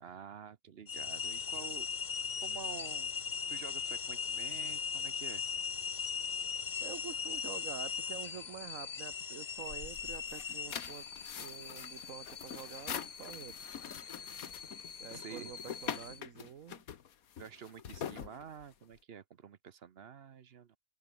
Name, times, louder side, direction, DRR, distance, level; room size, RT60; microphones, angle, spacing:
voice 1, 0.0-1.9 2.1-3.1 3.5-5.4 15.1-15.5 17.4-20.8, right 7 dB, 50° right, 1.0 m, -49 dB
sound 1, 0.9-16.2, left 6 dB, 35° left, 0.8 m, -40 dB
voice 2, 6.8-11.1 11.3-13.6 15.0-16.8, right 8 dB, 65° right, 1.4 m, -47 dB
sound 2, 9.8-19.0, left 8 dB, 75° left, 1.6 m, -45 dB
omnidirectional pair, 1.5 m